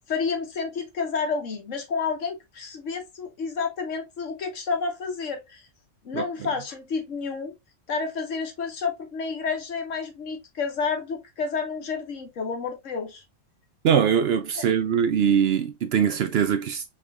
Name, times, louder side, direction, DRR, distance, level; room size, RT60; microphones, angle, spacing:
voice 1, 0.1-5.6 6.0-7.5 7.9-13.2 14.6-14.7, left 5 dB, 75° left, 1.4 m, -30 dB
voice 2, 13.8-16.8, right 8 dB, 65° right, 0.7 m, -22 dB
5.6 x 3.1 x 2.3 m
omnidirectional pair, 1.3 m